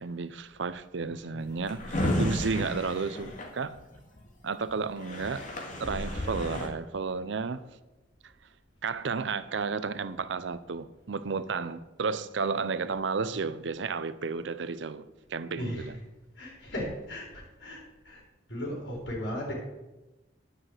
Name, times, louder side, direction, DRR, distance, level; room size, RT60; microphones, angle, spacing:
voice 1, 0.0-3.8 4.4-5.5 5.8-7.6 8.8-15.1 15.3-16.0, right 4 dB, 65° right, 0.5 m, -32 dB
voice 2, 1.1-1.6 13.3-13.4 15.5-16.0 16.4-18.2 18.5-19.5, equal, 65° left, 4.1 m, -37 dB
Drawer open or close, 1.4-4.2 4.7-4.8 5.0-6.7, left 1 dB, 40° left, 2.0 m, -32 dB
10.5 x 6.0 x 7.9 m
head